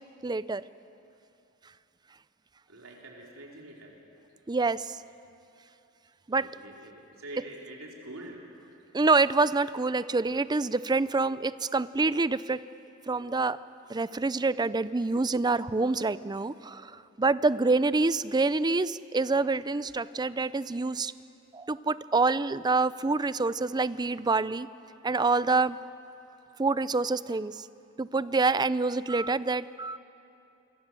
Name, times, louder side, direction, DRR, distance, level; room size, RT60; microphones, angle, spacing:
voice 1, 0.2-0.6 4.5-5.0 6.3-6.5 8.9-12.6 13.1-13.6 13.9-21.1 21.5-24.7 25.0-25.8 26.6-27.7 28.0-30.0, right 3 dB, 20° right, 16 dB, 0.5 m, -26 dB
voice 2, 2.7-3.9 6.3-8.4 17.4-17.5, right 1 dB, 80° right, -1 dB, 4.0 m, -46 dB
26.0 x 24.0 x 7.7 m, 2.7 s
head